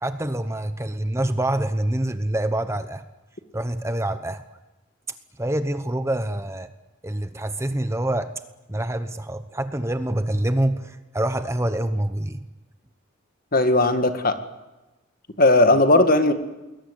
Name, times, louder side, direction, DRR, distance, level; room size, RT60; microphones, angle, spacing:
voice 1, 0.0-3.0 3.5-4.4 5.4-6.7 7.0-8.3 8.7-12.4, right 1 dB, 15° right, 10 dB, 0.9 m, -26 dB
voice 2, 13.5-14.4 15.4-16.3, left 2 dB, 45° left, 8 dB, 1.9 m, -17 dB
29.5 x 21.0 x 8.3 m, 1.1 s
head